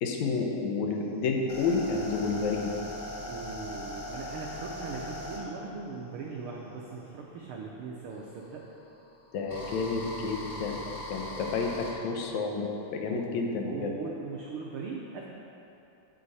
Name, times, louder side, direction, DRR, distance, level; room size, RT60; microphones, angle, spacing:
voice 1, 0.0-2.7 9.3-10.8 11.1-13.9, left 4 dB, 75° left, 2 dB, 2.1 m, -30 dB
sound 1, 0.9-7.1 8.1-11.9, left 1 dB, 30° left, 1.8 m, -40 dB
voice 2, 3.2-8.6 13.1-13.2 13.7-15.3, right 4 dB, 85° right, -1 dB, 1.2 m, -39 dB
9.8 x 7.9 x 4.1 m, 2.8 s
omnidirectional pair, 3.3 m